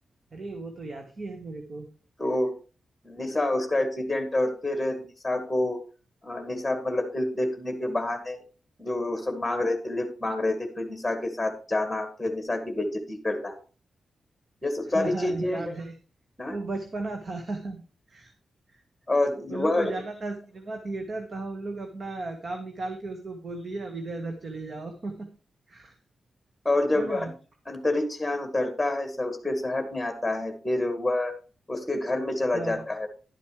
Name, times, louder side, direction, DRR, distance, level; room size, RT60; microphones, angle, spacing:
voice 1, 0.3-1.9 14.9-15.9 16.5-17.8 18.1-18.3 18.7-18.8 19.5-25.3 25.7-26.0 26.9-27.3 32.5-32.8, right 2 dB, 45° right, 4 dB, 1.6 m, -35 dB
voice 2, 2.2-2.5 3.0-5.8 6.2-8.4 8.8-13.6 14.6-15.7 16.4-16.6 19.1-19.9 26.7-27.3 27.7-31.3 31.7-33.1, left 2 dB, 5° left, 6 dB, 1.9 m, -28 dB
11.5 x 9.4 x 3.3 m, 0.36 s
wide cardioid pair, 130°, 0 cm